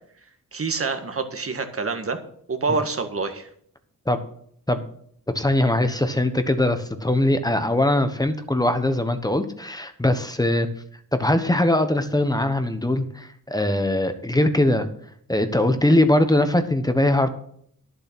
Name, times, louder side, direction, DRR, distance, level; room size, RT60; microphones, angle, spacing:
voice 1, 0.5-2.2 2.5-3.5, right 4 dB, 40° right, 6 dB, 1.7 m, -26 dB
voice 2, 5.3-10.7 11.1-14.9 15.3-17.3, left 1 dB, 10° left, 9 dB, 1.2 m, -21 dB
11.5 x 7.0 x 6.1 m, 0.64 s
cardioid pair, 80°, 33 cm